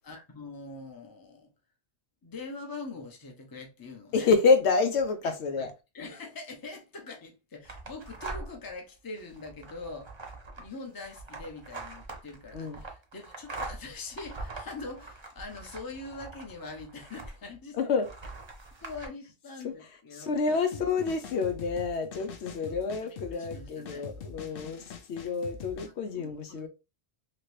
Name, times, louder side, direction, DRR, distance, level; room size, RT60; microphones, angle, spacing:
voice 1, 0.0-1.5 2.2-4.3 5.2-5.7 5.9-10.1 10.6-17.9 18.8-20.8 22.7-24.1 25.9-26.7, left 3 dB, 25° left, 0.6 m, -43 dB
voice 2, 4.1-5.7 12.5-12.8 17.7-18.1 19.6-19.7 20.2-24.8 25.1-26.7, left 4 dB, 85° left, 1.0 m, -28 dB
sound 1, 7.6-8.7 9.2-17.6 18.0-19.1, right 3 dB, 30° right, 0.6 m, -43 dB
sound 2, 20.7-25.9, left 5 dB, 65° left, 0.8 m, -43 dB
3.0 x 2.9 x 3.1 m
omnidirectional pair, 1.1 m